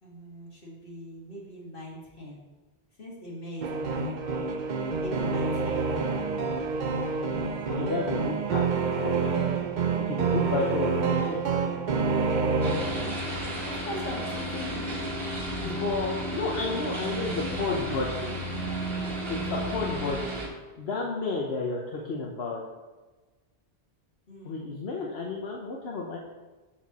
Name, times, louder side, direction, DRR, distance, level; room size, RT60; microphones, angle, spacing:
voice 1, 0.0-2.4 3.0-4.5 5.0-5.9 13.6-15.1 15.6-15.8 17.2-18.4 24.3-24.7, left 1 dB, 60° left, -4 dB, 2.5 m, -41 dB
sound 1, 3.6-13.4, right 5 dB, 50° right, 0.8 m, -28 dB
voice 2, 7.7-8.7 9.0-9.3 10.0-11.4 15.6-18.1 19.3-20.2 20.8-22.6 24.4-26.2, left 4 dB, 80° left, -2 dB, 1.2 m, -31 dB
sound 2, 12.6-20.5, right 1 dB, 70° right, 1.8 m, -33 dB
12.5 x 4.7 x 4.1 m, 1.2 s
omnidirectional pair, 1.0 m